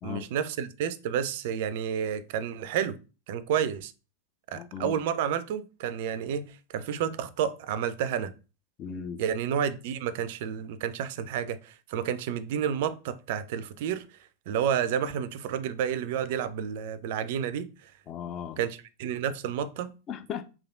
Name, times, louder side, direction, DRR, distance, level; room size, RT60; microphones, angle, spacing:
voice 1, 0.0-3.0 3.3-3.9 4.5-8.3 9.2-14.1 14.5-17.7 18.6-19.9, right 8 dB, 50° right, 0.3 m, -30 dB
voice 2, 4.5-5.0 8.8-9.2 18.1-18.6 20.1-20.5, left 8 dB, 30° left, 0.3 m, -37 dB
3.2 x 2.4 x 2.5 m
figure-of-eight pair, 90°, 0 cm